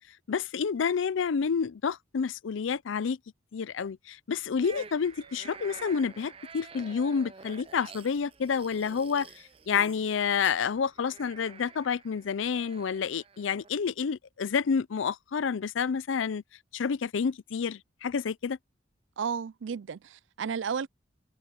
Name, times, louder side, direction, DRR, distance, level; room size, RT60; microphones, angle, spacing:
voice 1, 0.3-3.2 3.5-9.3 9.7-16.4 16.7-18.6, left 6 dB, 85° left, 0.5 m, -29 dB
sound 1, 4.6-13.8, right 5 dB, 30° right, 0.5 m, -49 dB
sound 2, 5.2-7.1, right 7 dB, 60° right, 2.7 m, -64 dB
voice 2, 19.2-20.9, right 6 dB, 80° right, 0.4 m, -33 dB
head